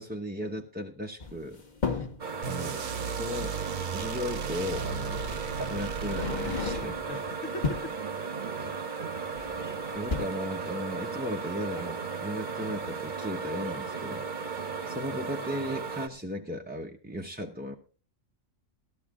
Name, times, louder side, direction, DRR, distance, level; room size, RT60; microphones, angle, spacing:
voice 1, 0.0-1.6 1.9-2.0 2.5-2.8 3.1-3.6 3.9-5.2 5.7-7.0 8.6-8.7 9.9-17.8, left 1 dB, 10° right, 1 dB, 0.6 m, -36 dB
sound 1, 1.2-2.3 3.9-4.0 5.1-5.3 5.9-7.1 7.5-8.0 9.3-9.7 10.0-10.2, left 4 dB, 35° left, 1.3 m, -33 dB
sound 2, 2.2-16.1, right 5 dB, 40° right, 1.1 m, -35 dB
sound 3, 2.4-7.2, right 6 dB, 65° right, 1.2 m, -37 dB
voice 2, 7.1-8.1, left 3 dB, 65° left, 8 dB, 1.4 m, -41 dB
14.0 x 13.0 x 3.6 m, 0.36 s
omnidirectional pair, 1.4 m